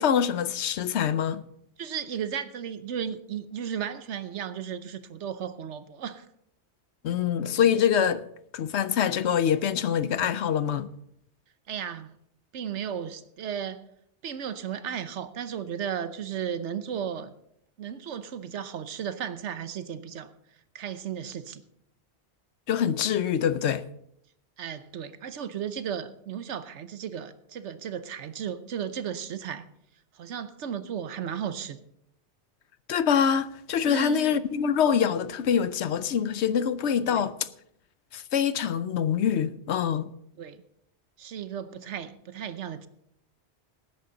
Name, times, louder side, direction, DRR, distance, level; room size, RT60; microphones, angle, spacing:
voice 1, 0.0-1.4 7.0-8.2 8.5-10.9 22.7-23.8 32.9-37.5 38.1-40.1, left 8 dB, 75° left, 0.9 m, -25 dB
voice 2, 1.8-6.3 11.7-12.1 12.5-13.8 14.2-17.3 17.8-20.3 20.7-21.6 24.6-29.7 30.1-31.8 33.9-34.4 37.1-37.2 40.4-40.6 41.2-42.9, right 8 dB, 85° right, 1.1 m, -35 dB
18.0 x 10.0 x 3.9 m
omnidirectional pair, 1.2 m